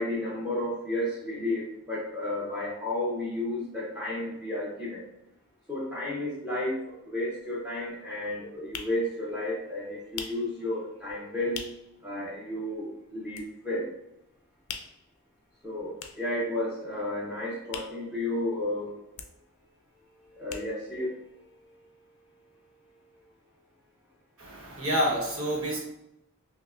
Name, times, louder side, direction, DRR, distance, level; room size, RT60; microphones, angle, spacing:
voice 1, 0.0-5.0 5.7-6.8 7.1-11.6 12.0-13.8 15.6-18.9 20.4-21.1, left 1 dB, 5° right, -6 dB, 0.6 m, -32 dB
sound 1, 6.9-7.0 7.3-12.0 12.3-12.4 12.7-13.9 14.2-18.7 19.0-21.1 21.4-21.5 21.6-21.7, left 7 dB, 80° left, 0.4 m, -44 dB
voice 2, 24.4-25.8, equal, 70° right, -2 dB, 1.1 m, -28 dB
5.5 x 2.1 x 2.4 m, 0.86 s
head